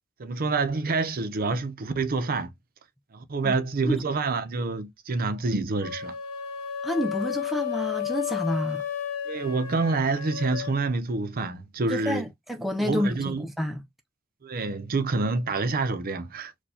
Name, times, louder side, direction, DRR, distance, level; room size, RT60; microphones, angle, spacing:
voice 1, 0.2-2.5 3.1-6.2 9.3-12.2 12.8-13.5 14.4-16.5, right 3 dB, 45° right, 0.6 m, -27 dB
sound 1, 5.8-10.8, left 9 dB, 80° left, 1.0 m, -32 dB
voice 2, 6.8-8.9 11.9-13.8, equal, ahead, 0.4 m, -29 dB
4.4 x 2.3 x 2.7 m
head